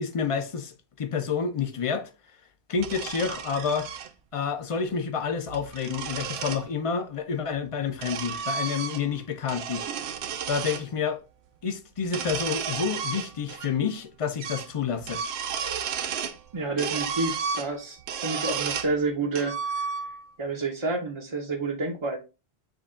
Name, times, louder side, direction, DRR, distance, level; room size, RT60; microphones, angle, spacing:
voice 1, 0.0-2.1 2.7-3.9 4.3-9.8 10.5-11.2 11.6-15.2, left 6 dB, 40° left, 0.5 m, -29 dB
sound 1, 2.8-4.1 5.3-6.6 7.5-9.2 9.4-10.8 12.0-13.7 14.0-14.1 14.4-14.7 15.0-16.4 16.8-18.9 19.3-20.3, right 6 dB, 80° right, 0.8 m, -33 dB
voice 2, 16.5-19.9 20.4-22.2, right 3 dB, 35° right, 0.6 m, -29 dB
6.1 x 2.3 x 3.6 m
omnidirectional pair, 1.1 m